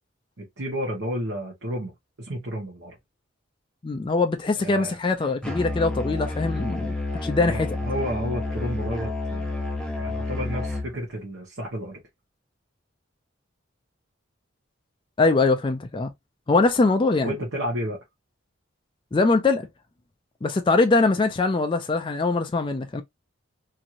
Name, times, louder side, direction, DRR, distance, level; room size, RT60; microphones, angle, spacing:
voice 1, 0.4-2.9 4.6-5.0 7.4-12.0 17.2-18.0, equal, 65° right, 1.0 m, -32 dB
voice 2, 3.8-6.9 7.2-7.7 15.2-16.1 16.5-17.3 19.1-19.7 20.4-23.0, left 3 dB, 25° left, 0.3 m, -22 dB
Musical instrument, 5.4-10.9, left 2 dB, 5° left, 0.7 m, -30 dB
3.0 x 2.6 x 2.5 m
head